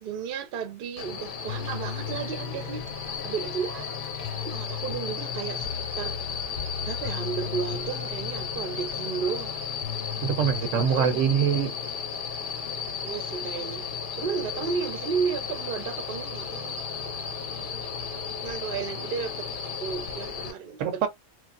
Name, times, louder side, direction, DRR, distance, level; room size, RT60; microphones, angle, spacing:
voice 1, 0.0-2.9 3.2-4.0 4.4-6.1 6.9-9.5 10.7-11.2 13.0-13.8 14.2-16.8 18.4-19.5 19.8-21.1, right 6 dB, 55° right, 0.7 m, -33 dB
sound 1, 1.0-20.5, left 6 dB, 50° left, 0.8 m, -34 dB
sound 2, 1.5-10.5, left 9 dB, 80° left, 1.0 m, -38 dB
voice 2, 10.2-11.7 20.8-21.1, right 7 dB, 90° right, 1.0 m, -24 dB
3.2 x 2.4 x 2.3 m
omnidirectional pair, 1.3 m